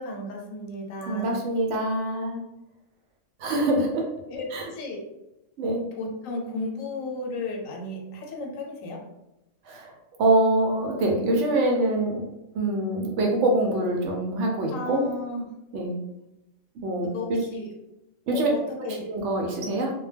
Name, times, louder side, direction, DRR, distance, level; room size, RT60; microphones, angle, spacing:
voice 1, 0.0-1.4 4.3-5.0 6.0-9.0 14.7-15.4 17.0-17.7 18.3-19.1, left 2 dB, 90° left, 1 dB, 1.0 m, -34 dB
voice 2, 1.0-2.4 3.4-4.0 4.5-4.7 5.6-5.8 9.7-9.9 10.2-12.2 12.5-15.0 15.7-15.9 16.8-17.4 18.3-18.5 19.0-19.9, right 1 dB, 70° right, 0 dB, 0.8 m, -24 dB
2.2 x 2.2 x 3.3 m, 0.92 s
omnidirectional pair, 1.4 m